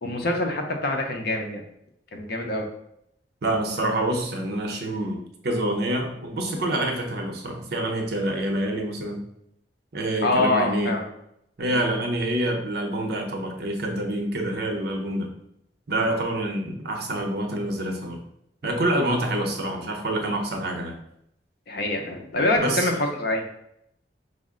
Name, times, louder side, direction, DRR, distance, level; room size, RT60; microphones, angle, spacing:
voice 1, 0.0-1.6 2.1-2.7 10.2-11.0 11.7-11.9 16.0-16.1 21.7-23.4, left 2 dB, 60° left, 3 dB, 0.7 m, -25 dB
voice 2, 3.4-9.2 9.9-10.9 11.6-15.3 15.9-18.2 18.6-21.0 22.6-22.9, right 1 dB, 60° right, 3 dB, 0.7 m, -27 dB
5.1 x 2.1 x 3.7 m, 0.77 s
head